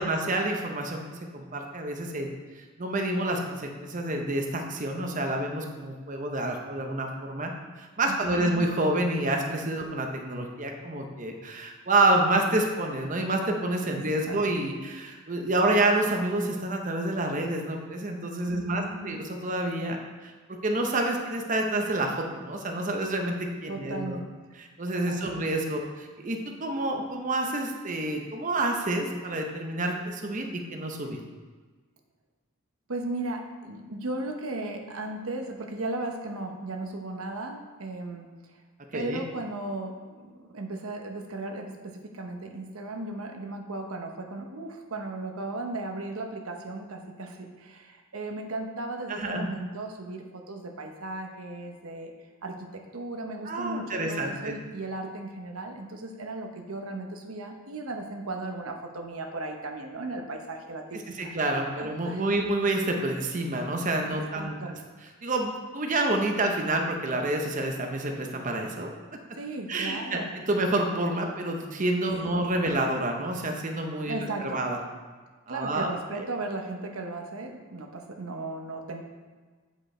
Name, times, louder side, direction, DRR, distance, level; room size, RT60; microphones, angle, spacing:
voice 1, 0.0-2.3 2.6-7.5 7.8-20.0 20.2-20.3 20.6-24.2 24.6-31.2 38.9-39.2 49.1-49.5 53.5-54.6 60.9-64.8 65.2-68.9 69.7-74.8 75.5-76.2, right 2 dB, 35° right, 2 dB, 0.7 m, -28 dB
voice 2, 8.1-8.6 13.9-14.4 18.5-19.2 23.7-24.3 25.1-25.5 32.9-38.3 38.9-52.1 52.4-61.3 61.8-62.4 64.3-64.7 69.4-70.3 72.2-72.4 74.1-74.6 75.5-79.0, right 2 dB, 85° right, 4 dB, 0.9 m, -36 dB
8.6 x 5.3 x 4.3 m, 1.4 s
head